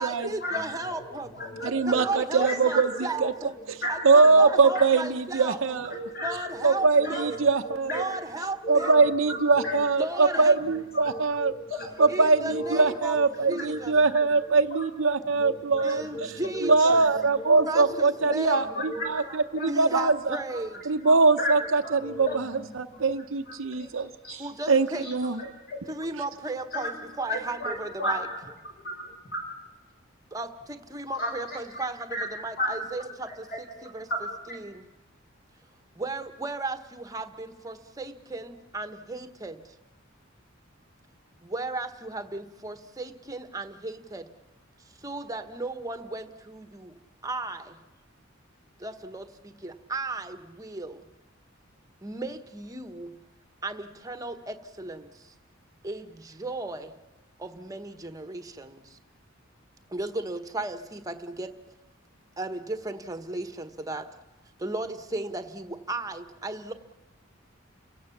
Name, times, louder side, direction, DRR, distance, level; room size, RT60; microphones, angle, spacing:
voice 1, 0.0-1.3 1.6-3.5 3.9-5.8 6.2-7.4 7.8-9.0 10.0-10.5 12.1-13.2 13.5-13.9 14.5-14.6 15.8-17.0 17.7-18.8 19.5-20.8 24.4-25.1 25.9-28.3 30.3-33.5 33.9-34.1 34.5-34.8 35.9-39.7 41.4-44.3 45.0-47.0 47.2-47.8 48.8-51.1 52.0-53.2 53.6-55.3 55.8-56.9 57.4-59.0 59.9-61.5 62.4-64.1 64.6-66.7, right 2 dB, 15° right, 8 dB, 1.2 m, -35 dB
voice 2, 0.9-3.3 3.8-4.9 5.9-8.2 8.6-9.9 10.2-14.8 15.3-19.7 20.5-20.6 21.0-21.1 21.4-23.1 23.5-23.6 24.2-24.4 24.7-25.1 25.4-25.9 26.7-26.9 27.3-28.2 28.6-29.4 31.1-31.8 32.1-32.2 32.6-32.7 33.2-34.2 34.5-34.6, left 1 dB, 50° left, 1 dB, 6.4 m, -35 dB
voice 3, 1.6-2.9 3.2-3.3 3.7-3.8 4.0-5.9 6.6-8.0 8.7-11.5 12.0-16.0 16.6-19.2 19.5-20.4 20.9-24.4 24.7-25.4, right 4 dB, 75° right, 4 dB, 0.8 m, -22 dB
30.0 x 17.0 x 7.2 m, 1.1 s
head